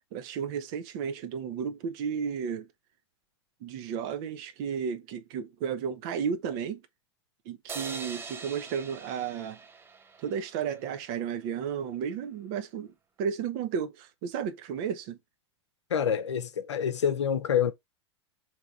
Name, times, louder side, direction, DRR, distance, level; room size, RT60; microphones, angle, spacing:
voice 1, 0.1-2.7 3.6-6.8 7.5-9.6 10.2-15.2, right 7 dB, 45° right, 0.7 m, -33 dB
sound 1, 7.7-11.0, right 4 dB, 15° right, 0.5 m, -43 dB
voice 2, 15.9-17.7, left 8 dB, 70° left, 0.7 m, -27 dB
3.5 x 2.9 x 4.1 m
figure-of-eight pair, 95°, 15 cm